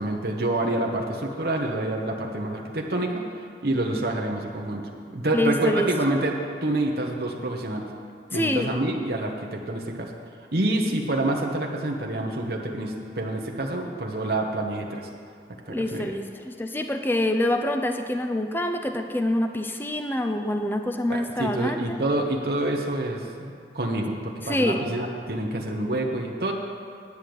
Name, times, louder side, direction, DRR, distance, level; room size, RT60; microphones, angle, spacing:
voice 1, 0.0-3.2 3.6-4.8 5.1-6.3 6.6-7.9 8.3-10.1 10.5-15.1 15.7-16.2 21.1-26.5, right 1 dB, 55° right, 0 dB, 1.1 m, -27 dB
voice 2, 5.3-5.9 8.3-8.7 15.7-22.0 24.4-24.8, left 1 dB, 10° left, 5 dB, 0.5 m, -26 dB
9.9 x 6.4 x 8.8 m, 2.3 s
head